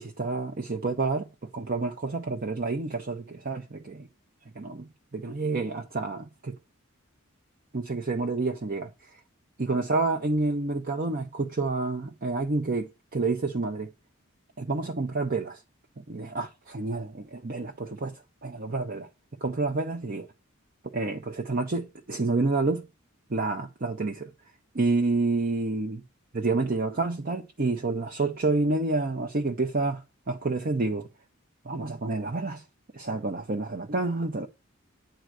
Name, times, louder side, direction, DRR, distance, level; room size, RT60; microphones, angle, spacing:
voice 1, 0.0-4.1 4.6-6.6 7.7-8.9 9.6-13.9 14.6-15.6 16.1-19.1 19.4-20.3 20.9-22.8 23.3-24.3 24.7-26.0 26.3-31.1 31.6-32.6 32.9-34.5, right 3 dB, 40° right, 0.7 m, -29 dB
9.0 x 3.9 x 6.2 m
head